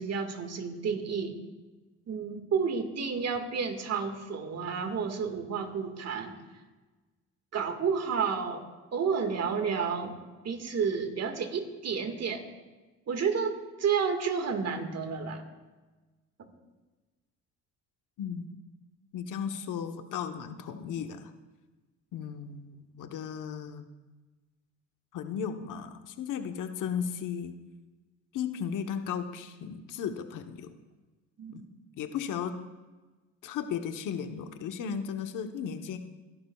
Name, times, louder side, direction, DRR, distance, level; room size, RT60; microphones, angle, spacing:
voice 1, 0.0-1.4 2.1-6.3 7.5-8.7 8.9-10.2 10.4-12.4 13.1-15.4 16.4-16.5 31.4-31.6, right 6 dB, 50° right, 6 dB, 1.9 m, -31 dB
voice 2, 18.2-18.5 19.1-21.3 22.1-23.8 25.1-27.6 28.3-30.7 31.5-31.7 32.0-32.5 33.4-36.0, left 7 dB, 70° left, 6 dB, 1.2 m, -35 dB
27.0 x 11.5 x 2.4 m, 1.2 s
supercardioid pair, 80°, 32 cm